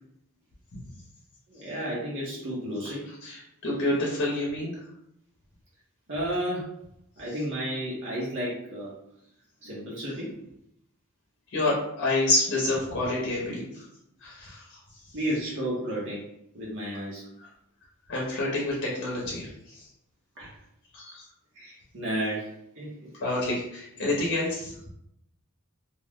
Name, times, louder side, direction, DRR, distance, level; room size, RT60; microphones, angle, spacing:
voice 1, 1.5-3.0 6.1-6.7 7.2-8.9 9.6-10.3 15.1-16.2 16.5-17.2 20.4-20.5 21.6-23.1, equal, 60° right, -6 dB, 0.8 m, -32 dB
voice 2, 3.2-4.8 11.5-13.8 14.2-14.8 17.4-17.5 18.1-19.9 20.9-21.2 23.2-24.7, left 2 dB, 55° left, -4 dB, 0.7 m, -28 dB
2.4 x 2.1 x 3.4 m, 0.78 s
head